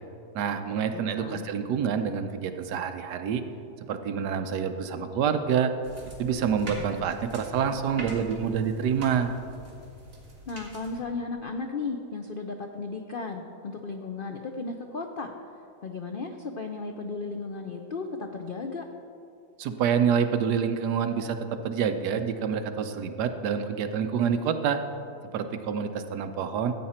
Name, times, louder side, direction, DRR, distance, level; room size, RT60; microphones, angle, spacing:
voice 1, 0.3-3.4 3.9-5.7 6.2-9.3 19.6-21.4 21.6-24.8 25.3-26.7, right 7 dB, 75° right, 8 dB, 1.3 m, -27 dB
voice 2, 0.9-1.5 10.5-15.3 15.8-18.9, left 4 dB, 90° left, 4 dB, 0.4 m, -35 dB
sound 1, 5.8-11.0, right 1 dB, 35° right, 2.3 m, -43 dB
14.5 x 8.7 x 4.3 m, 2.6 s
omnidirectional pair, 1.8 m